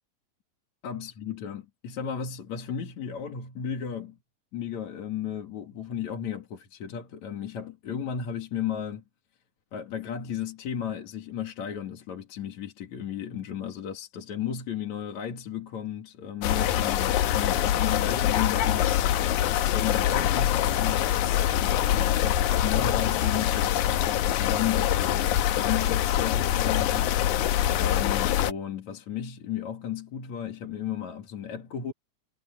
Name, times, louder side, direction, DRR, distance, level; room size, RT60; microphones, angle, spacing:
voice 1, 0.8-4.2 4.5-9.0 9.7-31.9, left 9 dB, 70° left, 3.4 m, -34 dB
sound 1, 16.4-28.5, left 11 dB, 85° left, 2.4 m, -24 dB
omnidirectional pair, 3.4 m